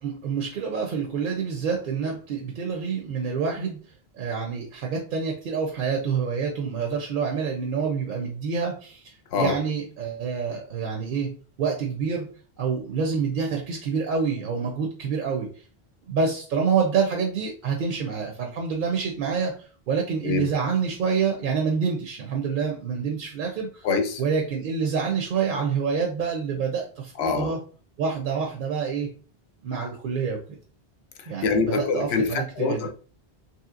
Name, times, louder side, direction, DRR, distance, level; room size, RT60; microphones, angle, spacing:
voice 1, 0.0-3.8 4.1-11.3 11.6-12.3 12.6-15.5 16.1-23.9 24.2-27.6 28.0-29.1 29.6-30.6 31.3-32.9, right 6 dB, 60° right, 0.7 m, -27 dB
voice 2, 23.8-24.2 27.2-27.6 31.4-32.9, left 5 dB, 90° left, 0.8 m, -24 dB
3.0 x 2.7 x 2.4 m
omnidirectional pair, 1.0 m